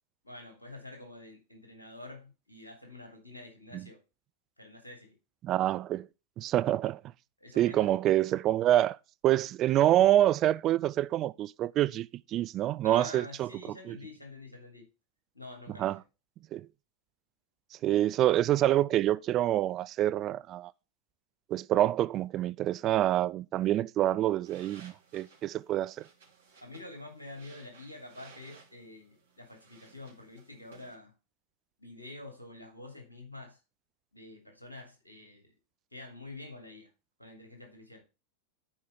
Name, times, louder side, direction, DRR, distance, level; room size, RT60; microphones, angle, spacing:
voice 1, 0.2-4.0 4.6-5.1 7.4-7.9 12.8-14.9 15.3-16.0 26.6-31.1 31.8-33.6 34.1-35.5 35.9-36.9 37.2-38.0, left 2 dB, 80° left, 2.9 m, -47 dB
voice 2, 5.4-6.1 6.4-7.0 7.6-9.0 9.2-13.5 13.9-14.0 15.8-16.0 16.5-16.7 17.8-20.7 21.5-26.0, right 13 dB, 35° right, 0.4 m, -26 dB
sound 1, 24.4-31.0, right 5 dB, 65° right, 3.3 m, -58 dB
10.5 x 4.8 x 5.6 m
figure-of-eight pair, 90°, 0 cm